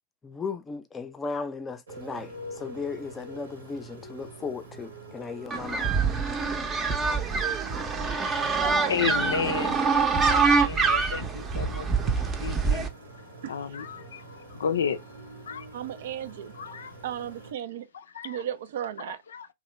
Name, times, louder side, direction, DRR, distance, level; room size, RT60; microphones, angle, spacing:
voice 1, 0.2-5.9, left 4 dB, 15° left, 0.5 m, -36 dB
Motorcycle, 1.9-17.5, right 1 dB, 80° right, 1.1 m, -46 dB
sound 1, 5.5-12.9, right 5 dB, 25° right, 0.6 m, -25 dB
voice 2, 8.9-9.8 10.3-12.9 13.5-15.0 15.5-15.7 16.5-17.0 17.9-18.4 19.1-19.5, left 7 dB, 75° left, 0.4 m, -33 dB
voice 3, 15.7-16.5 17.0-17.9 18.2-19.2, right 10 dB, 65° right, 0.4 m, -35 dB
3.0 x 2.2 x 3.0 m
hypercardioid pair, 105°, 0 cm